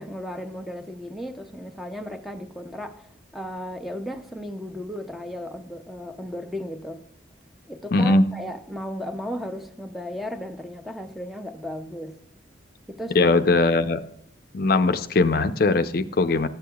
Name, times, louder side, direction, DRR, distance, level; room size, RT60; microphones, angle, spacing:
voice 1, 0.0-7.0 7.7-12.2 12.9-13.3, equal, ahead, 0.5 m, -35 dB
voice 2, 7.9-8.2 13.1-14.0 14.5-16.5, left 3 dB, 50° left, 0.5 m, -20 dB
13.5 x 8.4 x 2.3 m
head